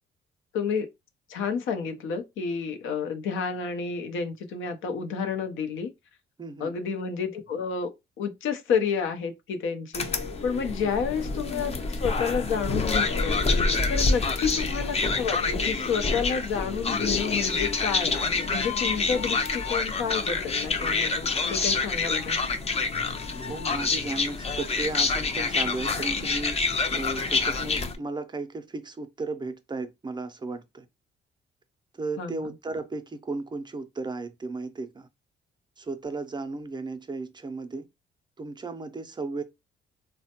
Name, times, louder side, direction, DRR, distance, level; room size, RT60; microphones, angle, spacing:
voice 1, 0.5-0.9 1.3-5.9 6.6-7.9 8.2-13.4 13.9-22.4 32.2-32.5, left 6 dB, 80° left, 0.6 m, -30 dB
voice 2, 6.4-6.7 10.8-10.9 14.1-14.2 23.4-26.6 26.9-30.9 31.9-35.1 35.8-37.9 38.4-39.4, right 3 dB, 20° right, 0.4 m, -35 dB
sound 1, 9.9-28.0, left 3 dB, 30° left, 0.5 m, -27 dB
3.2 x 2.1 x 2.8 m
cardioid pair, 90°, 20 cm